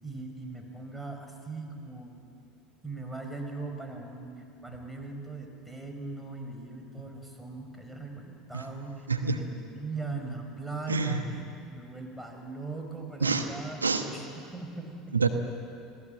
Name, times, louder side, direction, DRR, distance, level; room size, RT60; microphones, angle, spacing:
voice 1, 0.0-2.2 2.8-15.2, right 3 dB, 5° right, 3 dB, 5.1 m, -40 dB
voice 2, 10.9-11.2 13.2-13.4 13.8-14.0 15.1-15.3, right 4 dB, 90° right, 6 dB, 1.1 m, -26 dB
28.0 x 18.5 x 7.9 m, 2.5 s
figure-of-eight pair, 70°, 0 cm